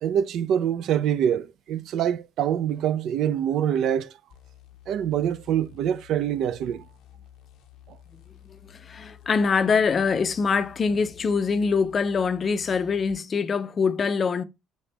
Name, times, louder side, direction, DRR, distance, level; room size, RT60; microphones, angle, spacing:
voice 1, 0.0-4.1 4.9-6.8, right 9 dB, 55° right, 0.4 m, -25 dB
sound 1, 4.3-13.2, left 11 dB, 70° left, 0.7 m, -51 dB
voice 2, 8.4-14.4, left 5 dB, 30° left, 0.5 m, -24 dB
7.1 x 4.2 x 3.3 m
cardioid pair, 140°, 0 cm